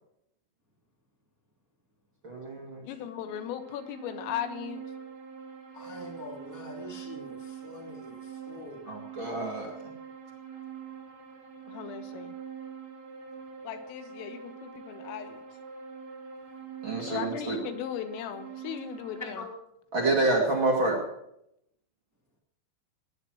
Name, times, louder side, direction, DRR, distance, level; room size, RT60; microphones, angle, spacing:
voice 1, 2.2-2.8 8.9-9.7 16.8-17.6 19.9-21.0, right 2 dB, 40° right, -1 dB, 2.0 m, -27 dB
voice 2, 2.9-4.8 11.7-12.4 13.6-15.4 17.1-19.5, left 10 dB, 85° left, 8 dB, 3.9 m, -37 dB
sound 1, 3.0-19.3, right 7 dB, 80° right, 6.1 m, -44 dB
voice 3, 5.7-7.3 7.6-8.2 8.5-8.8 19.3-19.4, left 2 dB, 5° right, -1 dB, 1.3 m, -43 dB
18.0 x 10.5 x 6.1 m, 0.79 s
omnidirectional pair, 5.8 m